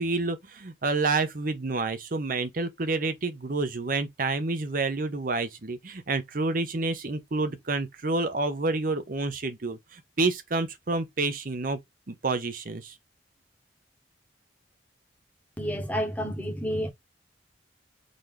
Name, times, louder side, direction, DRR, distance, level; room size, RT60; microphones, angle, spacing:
voice 1, 0.0-11.8 12.1-12.9, right 3 dB, 50° right, 0.8 m, -29 dB
voice 2, 15.6-16.9, equal, 10° left, 1.1 m, -30 dB
4.0 x 2.9 x 3.2 m
head